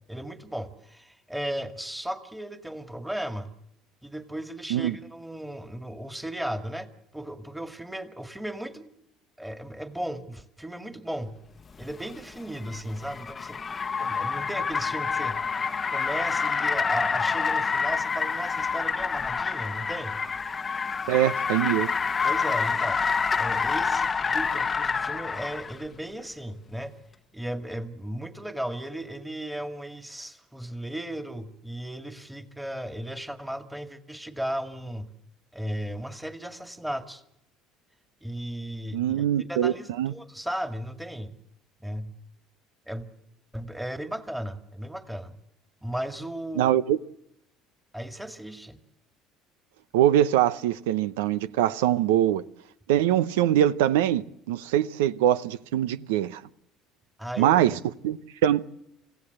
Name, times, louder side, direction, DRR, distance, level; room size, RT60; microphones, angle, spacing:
voice 1, 0.1-3.5 4.0-8.9 9.4-11.4 11.8-13.6 14.0-15.4 15.9-20.2 22.2-23.0 23.3-26.9 27.3-35.1 35.5-37.2 38.2-41.4 41.8-42.1 42.9-43.1 43.5-45.3 45.8-46.8 47.9-48.8 57.2-57.6, right 1 dB, 5° right, 2.1 m, -35 dB
Car, 11.8-25.7, left 5 dB, 30° left, 1.0 m, -27 dB
voice 2, 21.1-21.9 38.9-40.1 46.6-47.0 49.9-52.4 52.9-56.4 57.4-57.7 58.0-58.2 58.4-58.6, right 11 dB, 90° right, 0.8 m, -23 dB
26.0 x 16.0 x 7.9 m
supercardioid pair, 85°, 0 cm